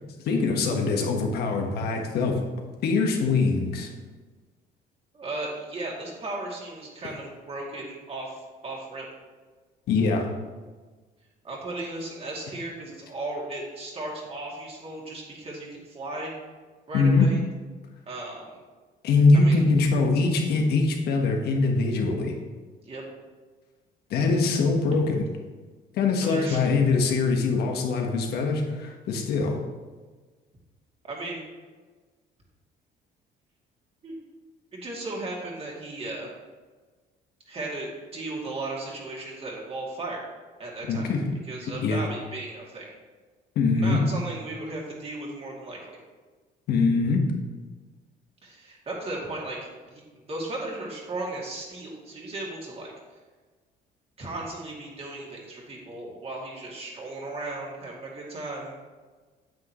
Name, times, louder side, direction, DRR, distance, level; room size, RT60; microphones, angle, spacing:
voice 1, 0.2-2.4 2.8-3.9 9.9-10.3 16.9-17.3 19.0-22.4 24.1-25.2 25.9-29.6 40.9-41.4 41.8-42.0 43.5-44.1 46.7-47.3, left 3 dB, 70° left, 2 dB, 1.4 m, -23 dB
voice 2, 5.1-9.1 11.4-16.3 16.9-17.4 18.1-18.6 19.3-19.6 22.8-23.0 24.9-25.0 26.2-26.6 31.0-31.4 34.0-34.2 34.7-36.3 37.5-40.2 40.6-41.1 41.5-42.9 43.7-46.0 48.4-49.6 49.9-50.0 50.3-52.9 54.2-58.8, right 2 dB, 35° right, -3 dB, 2.6 m, -36 dB
9.2 x 7.8 x 3.1 m, 1.4 s
cardioid pair, 110°, 17 cm